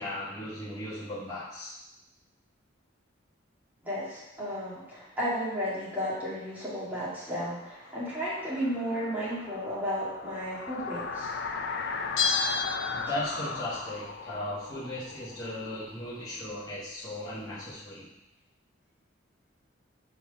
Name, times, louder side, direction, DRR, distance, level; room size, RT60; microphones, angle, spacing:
voice 1, 0.0-1.7 12.9-18.1, left 1 dB, 20° left, -9 dB, 1.4 m, -37 dB
voice 2, 3.8-11.3, equal, 10° right, -9 dB, 2.1 m, -33 dB
sound 1, 7.6-16.3, left 4 dB, 55° left, 0.5 m, -37 dB
Bell, 12.2-13.6 13.8-13.9, left 5 dB, 85° left, 1.0 m, -30 dB
5.6 x 4.4 x 4.9 m, 0.95 s
head